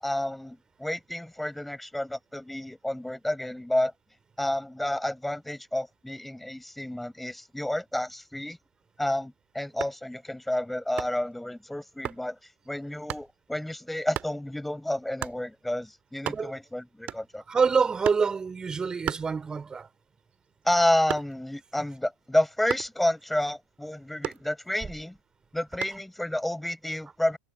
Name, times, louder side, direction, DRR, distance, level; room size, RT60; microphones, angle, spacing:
voice 1, 0.0-3.9 4.4-8.6 9.0-12.4 12.7-17.4 20.6-25.2 25.5-27.4, left 1 dB, 5° left, 6.4 m, -30 dB
sound 1, 9.7-10.1 11.0-11.3 12.0-12.3 13.1-13.3 14.1-14.4 15.2-15.4 15.9-16.0 16.1-16.7 17.1-17.5 18.0-18.4 19.0-19.8 20.2-21.6 22.7-23.0 24.2-24.9 25.8-26.1, right 12 dB, 35° right, 1.9 m, -35 dB
voice 2, 17.5-19.9, right 5 dB, 15° right, 3.4 m, -26 dB
figure-of-eight pair, 90°, 4 cm